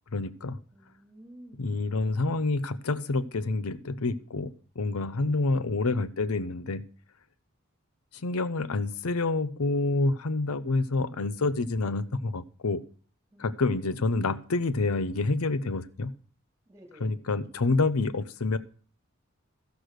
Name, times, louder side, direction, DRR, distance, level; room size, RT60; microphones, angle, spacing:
voice 1, 0.1-0.6 1.6-6.8 8.1-12.8 13.4-16.1 17.0-18.6, left 3 dB, 90° left, 15 dB, 0.7 m, -28 dB
voice 2, 0.7-1.6 2.1-2.2 5.2-5.5 13.3-13.5 16.7-17.2 17.5-17.6, right 1 dB, 15° right, 2 dB, 2.5 m, -52 dB
13.5 x 6.2 x 6.5 m, 0.42 s
head